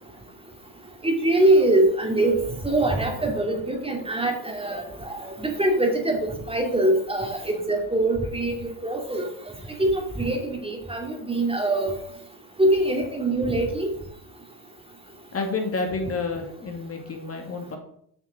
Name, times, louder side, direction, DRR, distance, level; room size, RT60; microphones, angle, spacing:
voice 1, 1.0-2.4 2.6-4.8 5.1-6.2 6.5-8.5 8.8-9.3 9.8-9.9 10.2-12.0 12.6-13.9, right 1 dB, 10° right, 2 dB, 2.5 m, -23 dB
voice 2, 15.3-17.8, left 3 dB, 30° left, 3 dB, 2.3 m, -29 dB
8.2 x 6.3 x 6.4 m, 0.67 s
supercardioid pair, 90°, 47 cm